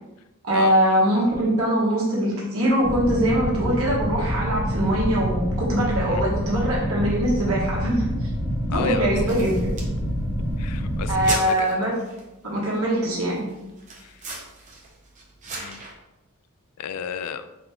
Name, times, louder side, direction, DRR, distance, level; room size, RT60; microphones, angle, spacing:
voice 1, 0.4-8.1 8.7-9.7 11.1-11.9 12.4-13.5, right 1 dB, 65° right, -4 dB, 1.2 m, -22 dB
sound 1, 2.8-11.3, equal, 15° right, 1.3 m, -27 dB
voice 2, 8.7-9.1 10.6-11.7 14.0-14.2 15.6-15.8 16.8-17.5, left 8 dB, 80° left, 12 dB, 0.3 m, -32 dB
sound 2, 9.3-15.9, right 3 dB, 35° right, 0.8 m, -39 dB
4.0 x 3.4 x 2.9 m, 0.97 s
head